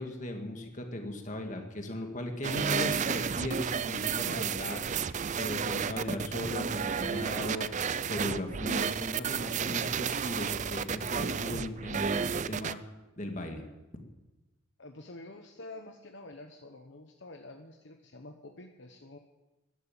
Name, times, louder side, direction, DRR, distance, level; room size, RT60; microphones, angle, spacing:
voice 1, 0.0-12.8 13.2-13.7, left 1 dB, 35° left, 4 dB, 2.0 m, -37 dB
sound 1, 2.4-12.7, right 6 dB, 35° right, 0.4 m, -32 dB
voice 2, 14.8-19.2, left 2 dB, 55° left, 4 dB, 1.0 m, -48 dB
13.0 x 11.0 x 8.6 m, 1.1 s
head